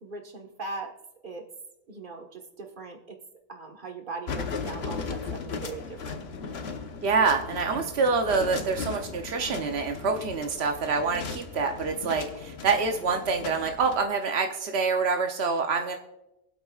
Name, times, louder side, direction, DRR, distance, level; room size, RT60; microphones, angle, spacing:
voice 1, 0.0-0.9 1.2-1.5 1.9-3.2 3.5-6.2, right 3 dB, 55° right, 2 dB, 1.5 m, -40 dB
sound 1, 4.3-14.0, left 4 dB, 80° left, 1.2 m, -37 dB
voice 2, 7.0-16.0, right 4 dB, 90° right, 4 dB, 1.1 m, -26 dB
24.0 x 8.2 x 2.4 m, 0.96 s
omnidirectional pair, 1.0 m